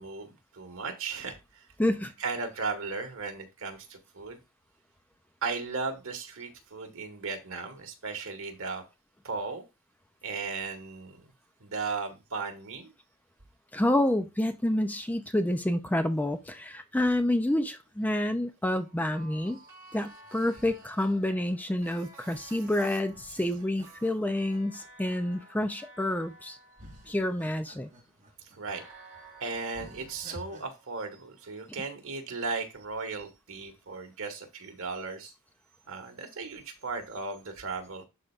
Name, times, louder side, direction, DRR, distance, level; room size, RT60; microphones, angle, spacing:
voice 1, 0.0-1.6 2.2-4.4 5.4-8.8 9.2-9.6 10.2-11.3 11.6-12.9 20.3-20.7 22.3-23.0 23.3-23.6 28.5-28.8 29.4-35.3 35.9-38.0, right 4 dB, 65° right, 1.6 m, -36 dB
voice 2, 1.8-2.1 13.7-19.6 19.9-26.6 27.1-27.9, left 1 dB, 5° left, 0.4 m, -28 dB
sound 1, 18.7-27.9 28.7-31.6, right 2 dB, 10° right, 4.1 m, -54 dB
sound 2, 20.2-22.2 23.1-25.7 26.3-26.4 26.8-28.8 29.2-29.3 29.7-30.6, right 1 dB, 35° right, 2.5 m, -54 dB
11.5 x 4.4 x 2.4 m
head